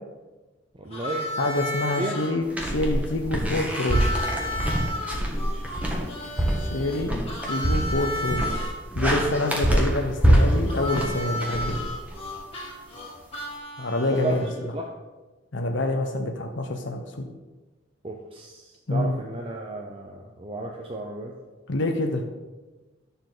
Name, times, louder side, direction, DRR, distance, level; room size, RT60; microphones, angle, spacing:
voice 1, 0.7-1.3 2.0-2.1 5.5-5.6 6.5-7.0 14.1-14.4 14.7-14.9 18.0-21.3, right 2 dB, 30° right, 0 dB, 0.7 m, -34 dB
Harmonica, 0.9-2.3 3.7-8.7 10.7-14.6, left 1 dB, 30° left, 2.0 m, -33 dB
voice 2, 1.4-4.0 6.6-7.1 7.5-8.4 8.9-11.8 13.8-14.5 15.5-17.3 18.9-19.1 21.7-22.2, left 2 dB, 65° left, 3 dB, 0.9 m, -26 dB
sound 1, 2.5-12.4, equal, 10° right, 1.4 m, -25 dB
11.5 x 7.0 x 4.0 m, 1.2 s
head